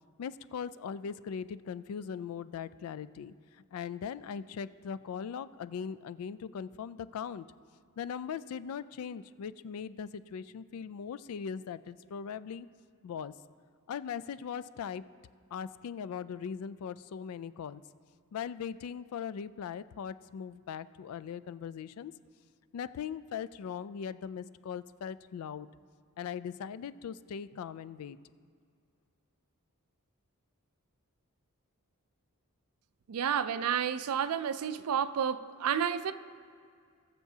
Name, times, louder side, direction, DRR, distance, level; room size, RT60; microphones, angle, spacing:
voice 1, 0.2-3.3 3.7-7.5 8.0-12.7 13.0-13.3 13.9-15.1 15.5-17.8 18.3-22.1 22.7-25.7 26.2-28.2, left 7 dB, 75° left, 16 dB, 0.3 m, -40 dB
voice 2, 33.1-36.1, right 8 dB, 85° right, 13 dB, 0.4 m, -30 dB
20.0 x 6.8 x 2.8 m, 2.2 s
head